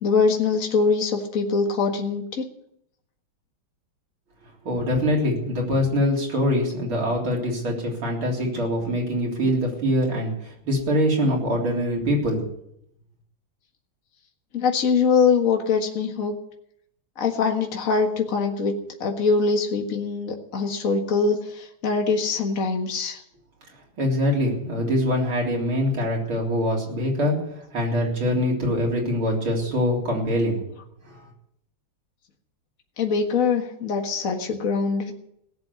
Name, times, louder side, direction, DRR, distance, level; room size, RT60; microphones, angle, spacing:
voice 1, 0.0-2.4 14.5-16.3 17.2-18.7 19.0-21.4 21.8-23.2 33.0-35.1, left 5 dB, 40° left, 3 dB, 2.0 m, -23 dB
voice 2, 4.6-10.3 10.7-12.4 24.0-27.3 27.7-30.6, equal, 85° right, -1 dB, 4.5 m, -23 dB
17.5 x 7.6 x 8.3 m, 0.74 s
omnidirectional pair, 2.2 m